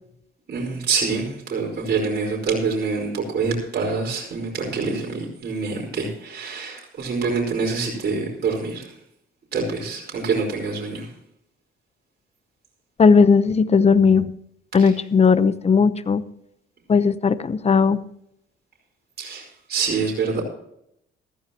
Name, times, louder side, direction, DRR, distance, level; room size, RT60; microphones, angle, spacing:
voice 1, 0.5-8.9 9.5-11.1 14.8-14.9 19.2-20.4, right 4 dB, 55° right, -2 dB, 4.9 m, -26 dB
voice 2, 13.0-14.3 14.7-16.2 16.9-18.0, left 5 dB, 30° left, 14 dB, 0.9 m, -17 dB
15.0 x 14.5 x 3.0 m, 0.75 s
cardioid pair, 90°, 20 cm